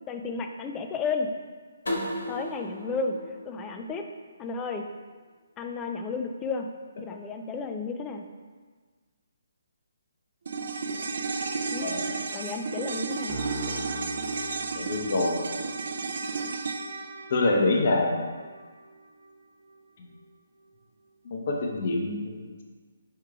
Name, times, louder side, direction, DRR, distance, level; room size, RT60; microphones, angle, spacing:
voice 1, 0.1-1.3 2.3-4.0 4.4-4.8 5.6-6.7 7.0-8.2 11.7-11.9 12.3-13.4, left 4 dB, 15° left, 5 dB, 0.3 m, -32 dB
sound 1, 1.9-4.7, left 1 dB, 75° left, 1.0 m, -36 dB
sound 2, 10.5-18.9 19.2-19.3, right 4 dB, 60° right, 0.4 m, -33 dB
Piano, 13.3-15.7, right 1 dB, 5° right, 1.0 m, -40 dB
voice 2, 14.7-15.6 17.3-18.3 20.0-20.1 21.3-22.6, left 2 dB, 45° left, 0 dB, 0.7 m, -26 dB
4.7 x 4.4 x 2.4 m, 1.5 s
figure-of-eight pair, 140°, 0 cm